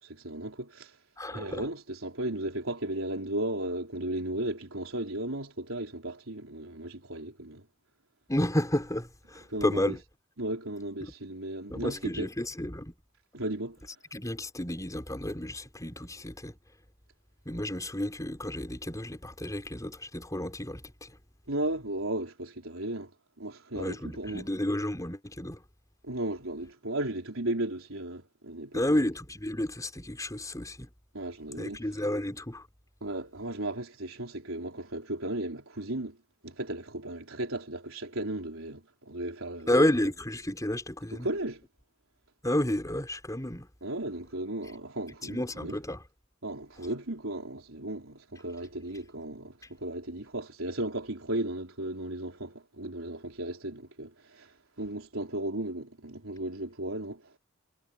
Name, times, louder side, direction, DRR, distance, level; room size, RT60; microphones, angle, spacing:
voice 1, 0.0-1.0 1.3-7.7 9.5-10.0 10.4-12.3 13.3-13.8 21.5-23.1 23.4-24.4 26.0-29.0 31.1-31.9 33.0-36.2 36.4-39.7 41.1-41.6 43.8-45.8 46.4-57.3, right 1 dB, 80° right, 4.1 m, -35 dB
voice 2, 1.2-1.6 8.3-10.0 11.0-11.1 11.7-12.9 14.1-16.5 17.4-21.1 23.7-25.6 28.7-30.9 31.6-32.7 39.7-41.3 42.4-43.7 45.2-46.0, left 1 dB, 15° left, 5.1 m, -31 dB
head